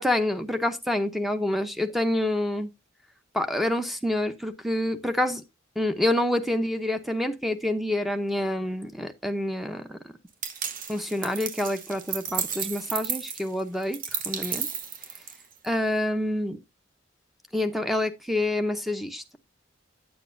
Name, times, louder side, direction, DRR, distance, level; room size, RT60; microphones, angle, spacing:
voice 1, 0.0-2.7 3.3-5.4 5.8-10.0 10.9-14.0 14.3-14.7 15.6-16.6 17.5-19.4, left 1 dB, ahead, 0.8 m, -27 dB
sound 1, 10.4-15.6, right 7 dB, 45° right, 0.9 m, -33 dB
9.0 x 9.0 x 2.6 m
head